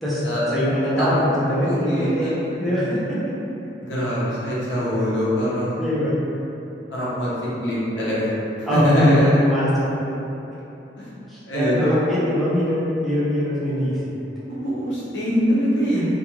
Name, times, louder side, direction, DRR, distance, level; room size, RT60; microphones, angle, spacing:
voice 1, 0.5-2.3 2.6-3.3 5.8-6.2 8.6-10.3 11.3-14.2, equal, ahead, -11 dB, 0.5 m, -23 dB
voice 2, 1.6-2.5 3.8-5.8 6.9-7.3 7.6-9.4 11.0-11.1 11.5-12.0 13.6-13.8 14.5-16.1, equal, 75° left, -8 dB, 0.8 m, -22 dB
2.4 x 2.3 x 2.9 m, 2.9 s
head